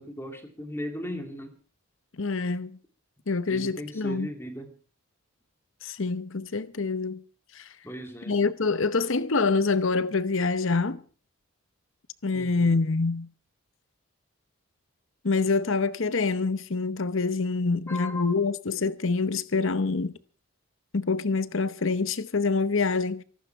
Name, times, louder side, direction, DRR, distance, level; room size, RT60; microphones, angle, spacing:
voice 1, 0.0-1.6 3.5-4.7 7.8-8.4 12.3-12.8 17.9-18.4, left 1 dB, 10° left, 2.5 m, -37 dB
voice 2, 2.2-2.7 3.3-4.3 5.8-7.2 7.5-7.7 8.3-11.0 12.2-13.3 15.2-20.1 20.9-23.2, left 4 dB, 60° left, 0.8 m, -26 dB
24.0 x 11.5 x 4.6 m
head